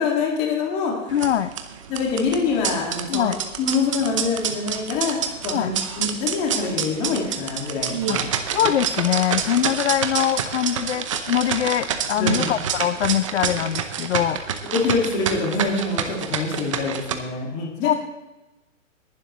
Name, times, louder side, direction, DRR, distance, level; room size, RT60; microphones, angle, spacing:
voice 1, 0.0-1.1 1.9-3.3 3.6-5.2 5.4-8.2 8.6-8.7 12.1-12.5 14.7-17.9, left 4 dB, 20° left, -1 dB, 2.0 m, -25 dB
voice 2, 1.1-1.5 3.1-3.4 5.5-5.7 8.1-8.2 8.5-14.5 17.8-17.9, left 11 dB, 60° left, 13 dB, 0.5 m, -23 dB
sound 1, 1.1-17.1, right 8 dB, 25° right, 0.7 m, -28 dB
19.5 x 11.5 x 3.1 m, 1.1 s
hypercardioid pair, 165°, 40 cm